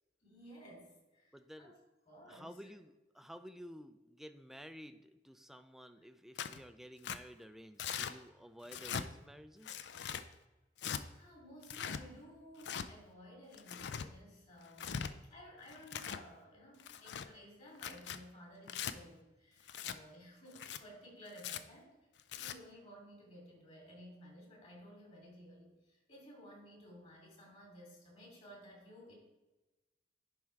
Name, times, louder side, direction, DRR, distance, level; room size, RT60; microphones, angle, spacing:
voice 1, 0.2-1.8 2.1-2.6 11.1-21.9 22.4-29.2, equal, 40° left, -1 dB, 2.8 m, -55 dB
voice 2, 1.3-1.7 2.3-9.9, equal, ahead, 9 dB, 0.4 m, -53 dB
Tearing, 6.4-6.6 7.0-7.2 7.8-8.1 8.7-9.1 9.6-10.2 10.8-11.0 11.6-12.0 12.6-12.9 13.5-14.1 14.7-15.1 15.7-16.2 16.8-17.3 17.7-18.2 18.7-18.9 19.7-20.0 20.5-20.8 21.4-21.6 22.2-22.5, left 8 dB, 70° left, 0.4 m, -41 dB
11.0 x 3.6 x 4.6 m, 1.1 s
head